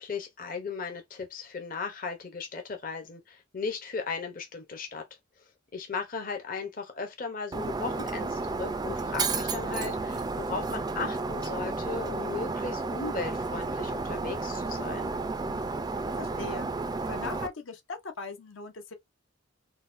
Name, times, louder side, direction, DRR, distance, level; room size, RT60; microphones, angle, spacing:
voice 1, 0.0-5.0 5.7-15.1, left 5 dB, 45° left, 0.7 m, -36 dB
Shatter, 7.5-17.5, right 3 dB, 20° right, 0.3 m, -32 dB
voice 2, 16.1-16.7 17.1-18.9, left 4 dB, 75° left, 0.7 m, -39 dB
3.9 x 2.2 x 2.5 m
head